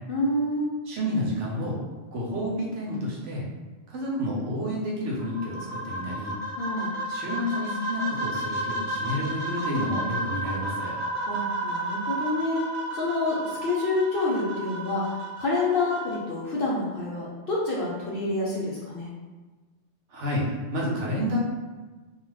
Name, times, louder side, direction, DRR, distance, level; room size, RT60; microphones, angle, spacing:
voice 1, 0.1-0.7 6.6-7.0 11.3-12.6 12.9-19.1, left 2 dB, 60° left, -5 dB, 0.7 m, -28 dB
voice 2, 0.9-1.8 2.1-3.4 3.9-6.3 7.1-10.9 20.1-20.5 20.7-21.4, equal, 70° right, -3 dB, 1.0 m, -30 dB
sound 1, 5.2-16.2, right 2 dB, 50° right, 0.5 m, -32 dB
2.4 x 2.3 x 3.2 m, 1.3 s
omnidirectional pair, 1.3 m